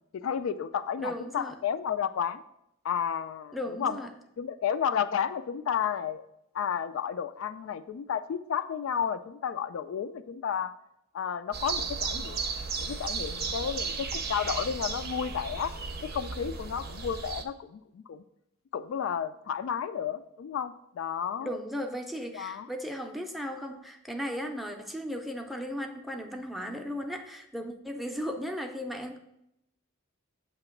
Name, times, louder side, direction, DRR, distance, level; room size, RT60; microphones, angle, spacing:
voice 1, 0.1-2.4 2.8-4.0 4.4-6.3 6.5-10.7 11.1-12.4 12.8-15.7 16.0-18.2 18.7-21.6 22.3-22.7, left 8 dB, 70° left, 11 dB, 0.3 m, -32 dB
voice 2, 1.0-1.5 3.5-4.1 21.4-29.2, equal, ahead, 4 dB, 0.5 m, -36 dB
sound 1, 11.5-17.4, right 4 dB, 50° right, 0.6 m, -34 dB
7.7 x 2.9 x 5.7 m, 0.82 s
head